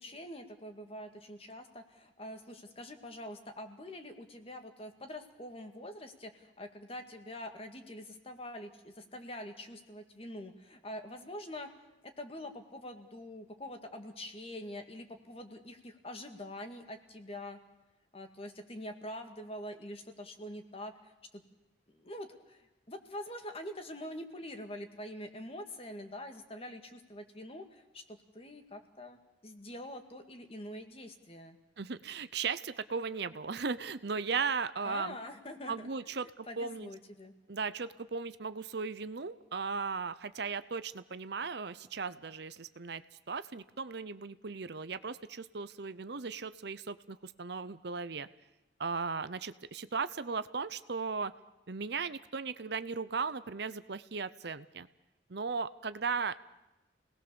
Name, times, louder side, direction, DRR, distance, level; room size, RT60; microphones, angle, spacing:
voice 1, 0.0-11.7 12.2-17.6 18.1-21.4 21.9-29.2 29.4-31.6 34.8-36.1 36.5-37.3, left 1 dB, 30° left, 6 dB, 2.0 m, -45 dB
voice 2, 31.8-35.2 35.7-36.9 37.5-48.3 48.8-51.3 51.7-54.9 55.3-56.4, right 5 dB, 60° right, 14 dB, 0.7 m, -37 dB
29.0 x 19.0 x 7.0 m, 0.99 s
head